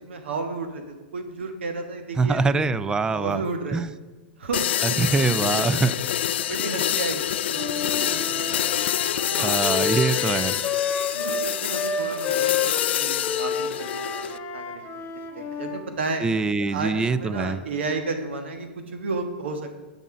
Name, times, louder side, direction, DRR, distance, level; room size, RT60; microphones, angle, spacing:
voice 1, 0.0-3.9 4.4-4.6 4.9-5.6 6.5-8.8 9.3-9.9 11.1-15.1 15.3-16.2 16.7-19.8, right 3 dB, 80° right, 6 dB, 1.2 m, -33 dB
voice 2, 2.2-3.4 3.7-3.9 4.8-5.9 9.4-10.6 16.2-17.6, right 4 dB, 10° right, 15 dB, 0.3 m, -23 dB
sound 1, 4.5-14.4, left 11 dB, 70° left, 0.3 m, -26 dB
Wind instrument woodwind instrument, 7.5-15.8, left 5 dB, 30° left, 1.3 m, -30 dB
7.1 x 5.6 x 6.8 m, 1.2 s
hypercardioid pair, 115°, 6 cm